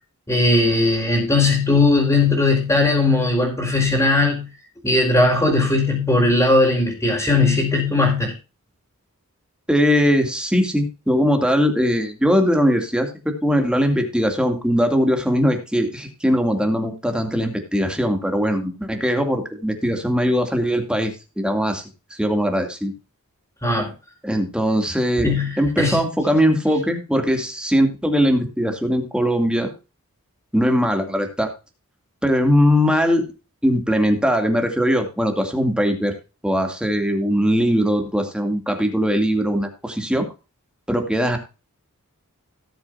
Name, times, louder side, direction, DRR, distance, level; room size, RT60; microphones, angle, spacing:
voice 1, 0.3-4.5 4.8-8.3 23.6-23.9 25.2-26.0, left 2 dB, 15° left, 4.2 m, -18 dB
voice 2, 9.7-21.8 22.1-22.9 24.2-25.3 25.6-29.7 30.5-31.5 32.2-33.2 33.6-36.1 36.4-40.3 40.9-41.4, equal, 5° right, 2.4 m, -20 dB
18.0 x 7.1 x 2.6 m
head